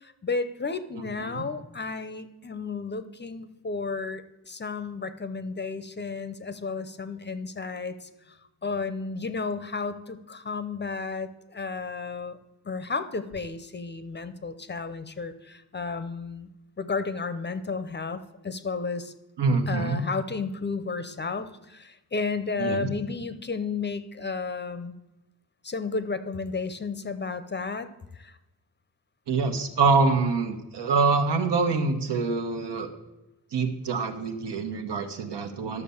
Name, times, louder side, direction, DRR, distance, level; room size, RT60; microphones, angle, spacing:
voice 1, 0.0-8.1 8.6-12.4 12.7-16.5 16.8-19.1 19.7-25.0 25.6-27.9 28.2-28.3, left 4 dB, 25° left, 12 dB, 0.6 m, -32 dB
voice 2, 0.9-1.4 19.4-20.0 22.6-22.9 29.3-32.9 33.5-35.8, right 4 dB, 80° right, 6 dB, 1.5 m, -25 dB
12.5 x 6.9 x 7.0 m, 1.0 s
wide cardioid pair, 175°, 40 cm